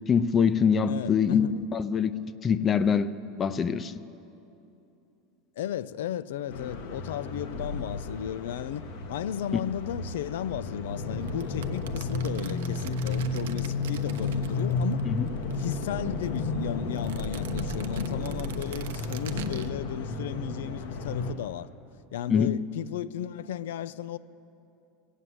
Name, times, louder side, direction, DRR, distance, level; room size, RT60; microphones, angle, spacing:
voice 1, 0.1-2.1 2.4-3.1 3.4-3.9 15.1-15.3 22.3-22.5, left 6 dB, 25° left, 0.5 m, -24 dB
voice 2, 0.9-1.6 5.6-15.1 15.6-21.7 22.1-24.2, left 10 dB, 90° left, 0.4 m, -35 dB
sound 1, 6.5-21.3, left 3 dB, 65° left, 1.3 m, -32 dB
sound 2, 11.2-15.0 15.3-16.4 16.9-19.7, right 11 dB, 85° right, 0.7 m, -46 dB
19.5 x 8.2 x 7.7 m
supercardioid pair, 145°, 0 cm